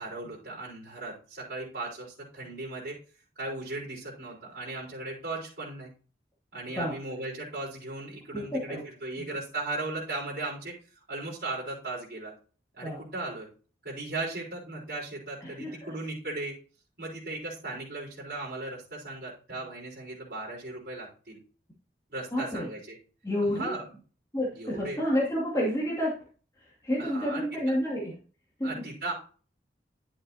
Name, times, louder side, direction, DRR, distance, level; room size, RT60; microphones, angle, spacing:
voice 1, 0.0-3.0 3.4-5.9 6.5-10.7 11.1-12.3 12.7-13.5 13.8-16.5 17.0-21.4 22.1-23.0 23.4-23.8 24.5-25.0 27.0-27.4 28.6-29.1, right 2 dB, 55° right, -11 dB, 4.7 m, -37 dB
voice 2, 8.3-8.8 12.8-13.0 15.4-15.9 22.3-22.7 23.2-23.7 24.3-26.2 26.6-28.2 28.6-28.8, equal, 20° left, -5 dB, 2.5 m, -30 dB
11.5 x 7.6 x 2.9 m, 0.39 s
head